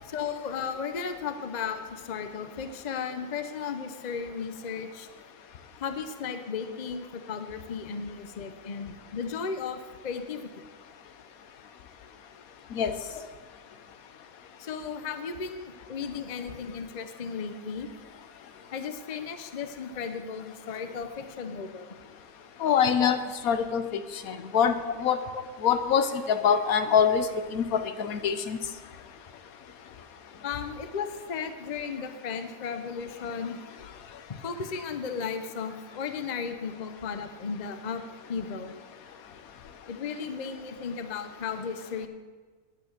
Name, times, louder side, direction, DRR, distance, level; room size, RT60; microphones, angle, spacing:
voice 1, 0.1-5.1 5.8-10.5 13.1-13.2 14.6-17.9 18.7-21.9 23.0-23.2 24.9-25.0 25.3-25.4 30.4-33.6 34.4-38.0 38.3-38.7 39.9-42.1, left 6 dB, 40° left, 8 dB, 0.7 m, -35 dB
voice 2, 22.6-23.2 23.4-23.8 24.3-25.2 25.6-27.3 27.5-28.6, left 7 dB, 75° left, 9 dB, 1.2 m, -24 dB
10.5 x 8.5 x 6.5 m, 1.4 s
omnidirectional pair, 1.5 m